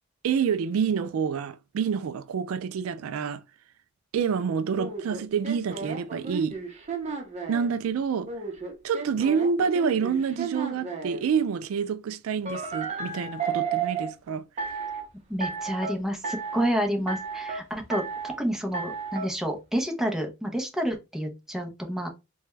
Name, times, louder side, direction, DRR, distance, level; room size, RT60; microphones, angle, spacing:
voice 1, 0.2-3.4 4.1-6.6 7.5-8.3 8.8-14.8, right 6 dB, 85° right, 0.3 m, -27 dB
sound 1, 4.8-7.7 8.3-11.2 12.5-14.1 14.6-15.0 15.4-15.9 16.2-16.7 17.1-17.6 17.9-18.4 18.7-19.3, right 5 dB, 35° right, 0.8 m, -33 dB
voice 2, 15.3-22.1, equal, ahead, 0.7 m, -29 dB
3.3 x 2.3 x 3.1 m
head